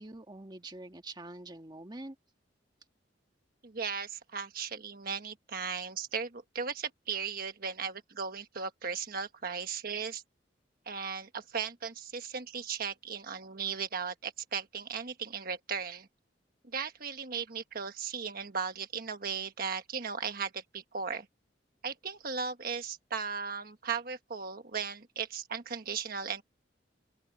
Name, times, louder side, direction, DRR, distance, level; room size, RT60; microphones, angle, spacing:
voice 1, 0.0-2.2, right 2 dB, 25° right, 1.8 m, -45 dB
voice 2, 3.6-10.2 10.9-16.1 16.7-21.3 21.8-26.4, right 6 dB, 55° right, 1.3 m, -37 dB
open air
head